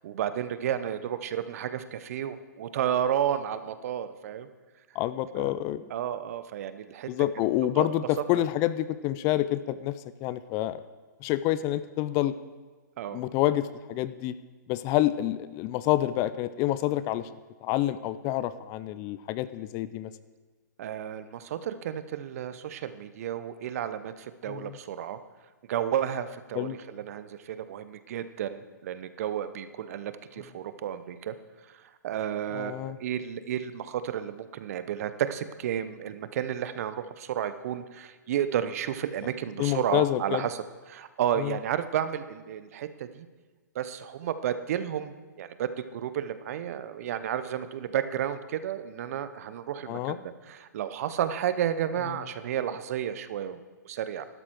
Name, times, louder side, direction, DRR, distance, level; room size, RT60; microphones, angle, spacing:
voice 1, 0.0-4.5 5.4-5.5 5.9-7.1 7.8-7.9 8.3-8.5 13.0-13.2 20.8-25.2 25.7-31.3 31.7-43.3 43.7-53.6 53.8-54.3, right 10 dB, 50° right, 12 dB, 0.8 m, -32 dB
voice 2, 4.9-5.9 7.1-10.0 10.2-10.8 11.2-12.3 13.1-14.4 14.7-17.3 17.6-20.1 24.5-24.8 26.5-26.8 32.5-33.0 39.6-40.4 41.4-41.6 49.9-50.2, left 14 dB, 30° left, 15 dB, 0.4 m, -28 dB
12.5 x 12.0 x 4.5 m, 1.3 s
hypercardioid pair, 125°, 10 cm